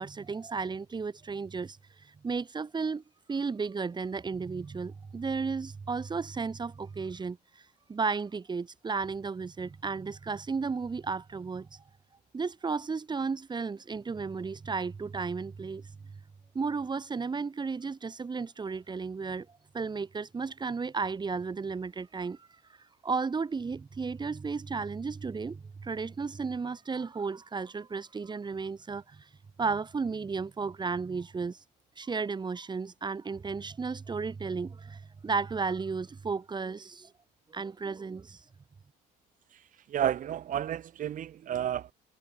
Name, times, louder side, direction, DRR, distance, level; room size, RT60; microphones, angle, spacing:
voice 1, 0.0-3.0 3.3-7.6 7.9-11.8 12.3-15.8 16.5-19.5 19.7-22.5 23.0-29.3 29.6-31.6 32.0-37.1 37.5-38.4, right 4 dB, 25° right, 2.5 m, -34 dB
voice 2, 39.9-41.9, right 10 dB, 50° right, 1.3 m, -31 dB
cardioid pair, 110°, 17 cm